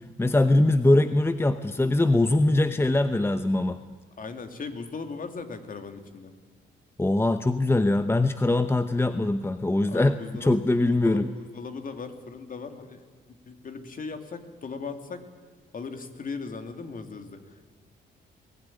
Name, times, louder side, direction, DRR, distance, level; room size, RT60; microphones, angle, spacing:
voice 1, 0.2-3.8 7.0-11.3, left 2 dB, 10° left, 10 dB, 0.8 m, -22 dB
voice 2, 4.2-6.3 9.9-10.6 11.0-13.0 13.5-15.2 15.7-17.8, left 4 dB, 45° left, 7 dB, 2.6 m, -38 dB
22.5 x 17.0 x 10.0 m, 1.4 s
cardioid pair, 90°, 20 cm